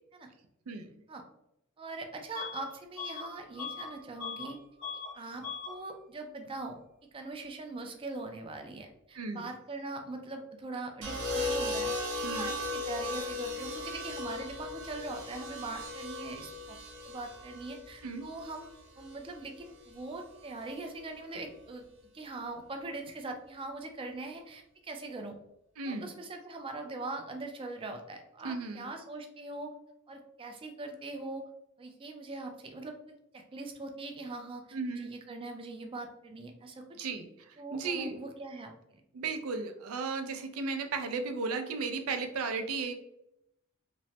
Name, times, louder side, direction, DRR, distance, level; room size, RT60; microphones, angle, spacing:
voice 1, 0.7-1.0 9.1-9.5 12.2-12.6 18.0-18.3 25.8-26.1 28.4-28.9 34.7-35.1 36.9-38.2 39.1-42.9, right 4 dB, 85° right, 6 dB, 0.4 m, -35 dB
voice 2, 1.8-4.6 5.1-6.8 7.1-11.9 12.3-16.8 17.0-18.7 19.0-21.9 22.1-25.4 25.9-29.7 30.1-31.4 31.8-33.0 33.3-36.9 37.6-39.0, right 2 dB, 25° right, 4 dB, 0.3 m, -41 dB
Bus / Alarm, 2.4-2.7 3.0-4.5 4.8-5.1 5.4-5.8, left 5 dB, 65° left, 1.0 m, -40 dB
sound 1, 11.0-19.2 20.4-20.8, left 2 dB, 60° right, 0.8 m, -37 dB
3.0 x 2.1 x 2.7 m, 0.80 s
head